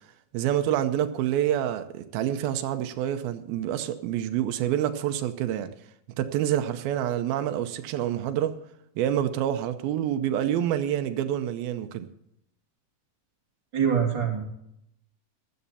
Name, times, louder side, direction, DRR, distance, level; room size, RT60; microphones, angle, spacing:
voice 1, 0.3-5.7 6.2-8.5 9.0-12.1, right 11 dB, 90° right, 2.7 m, -27 dB
voice 2, 13.7-14.4, right 7 dB, 30° right, 3.3 m, -24 dB
15.5 x 11.5 x 4.2 m
omnidirectional pair, 4.2 m